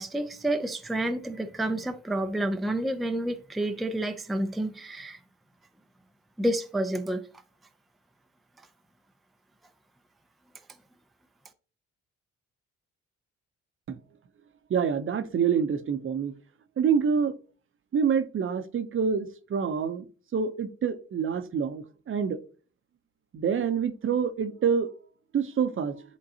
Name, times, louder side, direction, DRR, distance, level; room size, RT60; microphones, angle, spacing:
voice 1, 0.0-5.2 6.4-7.3, right 1 dB, ahead, 0.5 m, -29 dB
voice 2, 14.7-16.3 16.8-17.3 17.9-20.0 20.3-22.4 23.3-24.9 25.3-26.0, right 6 dB, 45° right, 0.7 m, -27 dB
10.5 x 3.8 x 2.8 m
cardioid pair, 90°, 30 cm